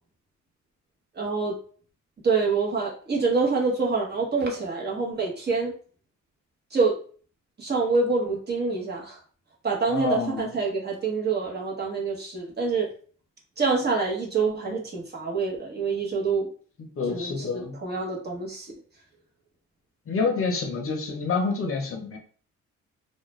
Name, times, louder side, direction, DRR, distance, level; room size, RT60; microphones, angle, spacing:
voice 1, 1.2-1.5 2.2-5.7 6.7-7.0 7.6-9.2 9.6-12.9 13.6-16.5 17.1-18.7, right 4 dB, 35° right, -2 dB, 0.9 m, -26 dB
voice 2, 9.9-10.5 17.0-17.8 20.1-22.2, left 4 dB, 45° left, 3 dB, 0.7 m, -28 dB
2.3 x 2.1 x 3.0 m, 0.43 s
cardioid pair, 90°, 30 cm